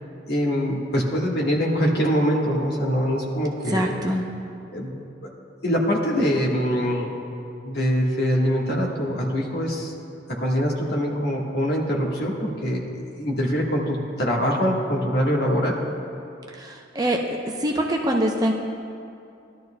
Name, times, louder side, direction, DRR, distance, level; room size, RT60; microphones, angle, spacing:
voice 1, 0.2-3.9 4.7-5.0 5.6-7.1 7.6-9.9 10.3-15.8, equal, 55° left, -2 dB, 1.4 m, -23 dB
voice 2, 3.7-4.2 16.6-16.7 17.0-17.2 17.6-18.5, right 1 dB, 20° right, 1 dB, 0.6 m, -23 dB
17.0 x 12.0 x 2.2 m, 2.6 s
head